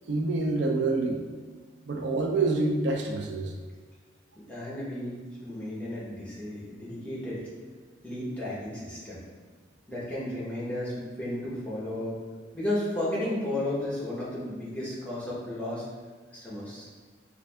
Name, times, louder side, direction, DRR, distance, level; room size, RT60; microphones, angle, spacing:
voice 1, 0.1-1.2 1.9-3.5, right 3 dB, 70° right, 2 dB, 0.4 m, -27 dB
voice 2, 4.5-5.2 5.4-7.4 8.0-9.2 9.9-12.2 12.5-15.8 16.4-16.9, left 1 dB, 10° left, -8 dB, 0.9 m, -33 dB
3.3 x 2.5 x 3.3 m, 1.5 s
head